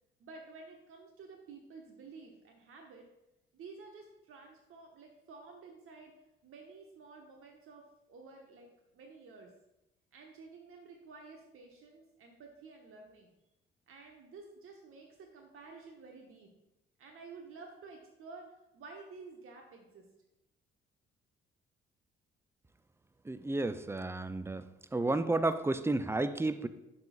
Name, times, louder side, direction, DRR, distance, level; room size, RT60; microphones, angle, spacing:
voice 1, 0.2-3.1 3.5-6.1 6.4-9.5 10.1-13.3 13.9-16.5 17.0-20.1, right 4 dB, 45° right, 2 dB, 1.0 m, -52 dB
voice 2, 23.3-24.7 24.9-26.7, right 2 dB, 10° right, 13 dB, 0.4 m, -31 dB
11.5 x 5.7 x 2.4 m, 0.92 s
figure-of-eight pair, 45°, 29 cm